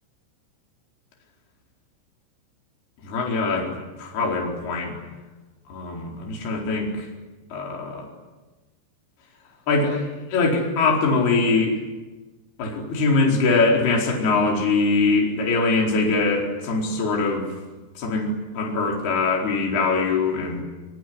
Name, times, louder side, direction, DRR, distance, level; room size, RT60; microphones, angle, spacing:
voice 1, 3.0-4.9 5.7-7.1 7.5-8.1 9.7-11.8 12.6-17.5 18.0-20.6, left 3 dB, 50° left, 0 dB, 6.2 m, -22 dB
25.5 x 24.5 x 9.6 m, 1.2 s
omnidirectional pair, 5.9 m